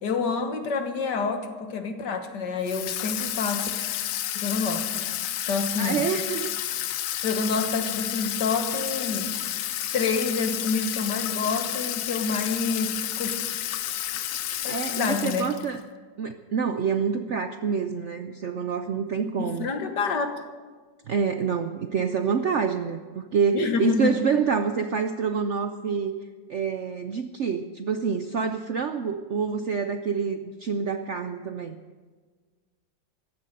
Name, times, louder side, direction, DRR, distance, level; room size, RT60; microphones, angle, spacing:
voice 1, 0.0-3.7 4.3-5.1 5.5-6.1 7.2-9.4 9.9-13.3 14.6-15.6 19.4-20.4 23.5-24.2, left 4 dB, 70° left, 7 dB, 2.0 m, -28 dB
Water tap faucet / Sink (filling or washing), 2.7-15.8, left 12 dB, 85° left, 1.4 m, -31 dB
voice 2, 5.8-6.6 14.7-15.8 16.2-19.7 21.1-26.2 26.5-31.8, right 6 dB, 65° right, 8 dB, 0.7 m, -27 dB
15.0 x 12.5 x 6.6 m, 1.4 s
omnidirectional pair, 2.0 m